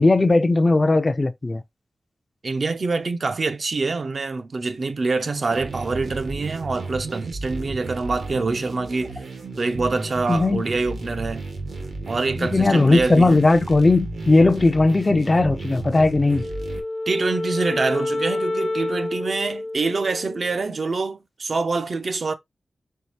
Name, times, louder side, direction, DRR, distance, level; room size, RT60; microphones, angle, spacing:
voice 1, 0.0-1.6 10.3-10.6 12.4-16.4, left 2 dB, 30° left, 0.4 m, -17 dB
voice 2, 2.4-9.2 9.6-11.4 12.1-13.4 17.1-22.3, right 3 dB, 55° right, 0.5 m, -25 dB
sound 1, 5.5-16.8, right 3 dB, 85° right, 1.3 m, -33 dB
Wind instrument woodwind instrument, 16.3-20.8, left 2 dB, 50° left, 0.8 m, -29 dB
4.5 x 4.0 x 2.6 m
wide cardioid pair, 110°, 0 cm